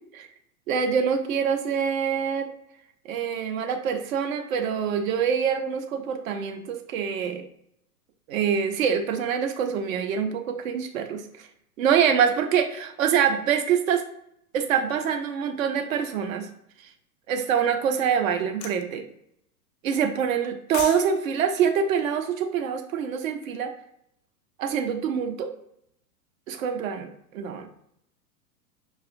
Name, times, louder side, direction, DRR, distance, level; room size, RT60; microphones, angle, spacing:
voice 1, 0.7-2.5 3.0-7.4 8.3-11.5 11.8-14.0 14.5-16.5 17.3-19.0 19.8-23.7 24.6-25.5 26.5-27.7, right 7 dB, 60° right, 6 dB, 0.8 m, -25 dB
sound 1, 18.6-18.8 20.4-21.1 21.3-21.5, left 7 dB, 45° left, 0.5 m, -34 dB
5.9 x 2.4 x 2.5 m, 0.74 s
figure-of-eight pair, 100°, 46 cm